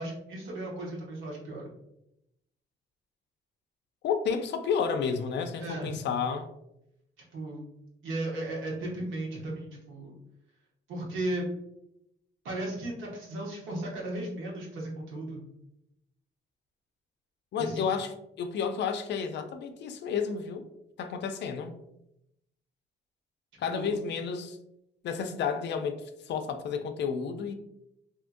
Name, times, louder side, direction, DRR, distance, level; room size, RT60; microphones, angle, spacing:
voice 1, 0.0-1.7 5.6-6.0 7.3-7.6 8.0-10.1 10.9-11.5 12.4-15.4 17.6-17.9 23.7-24.0, right 1 dB, 85° right, 1.0 m, -35 dB
voice 2, 4.0-6.5 17.5-18.1 18.4-20.7 21.0-21.7 23.6-24.6 25.0-27.5, left 6 dB, 60° left, 0.4 m, -31 dB
2.7 x 2.4 x 2.5 m
cardioid pair, 90°, 20 cm